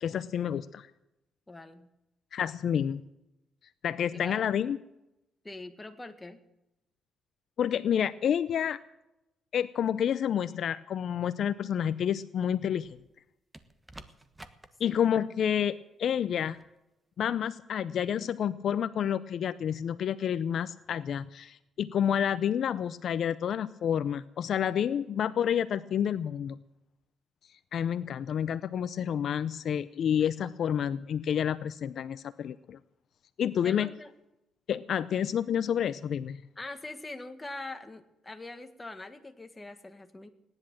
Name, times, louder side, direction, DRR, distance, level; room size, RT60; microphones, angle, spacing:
voice 1, 0.0-0.9 2.3-3.0 3.8-4.8 7.6-8.8 9.5-12.9 14.8-16.6 17.2-26.6 27.7-32.8 33.4-33.9 34.7-36.4, left 9 dB, 65° left, 14 dB, 0.5 m, -29 dB
voice 2, 1.5-1.9 4.2-4.5 5.4-6.4 14.8-15.0 33.6-34.1 36.5-40.3, left 2 dB, 15° left, 7 dB, 1.7 m, -43 dB
sound 1, 12.5-13.1 13.5-14.7 16.5-16.7, right 1 dB, 15° right, 1.3 m, -51 dB
17.5 x 10.5 x 7.6 m, 0.90 s
cardioid pair, 90°, 0 cm